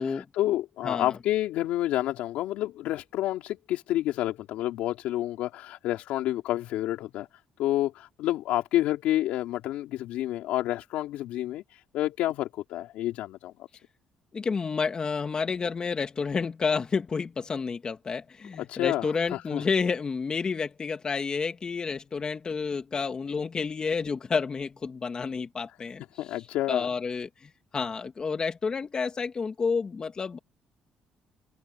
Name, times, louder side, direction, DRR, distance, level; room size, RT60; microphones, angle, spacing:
voice 1, 0.0-13.5 18.6-19.6 26.2-26.9, left 14 dB, 80° left, 3.1 m, -29 dB
voice 2, 14.3-26.0 26.7-30.4, left 5 dB, 35° left, 2.5 m, -30 dB
supercardioid pair, 80°, 2 cm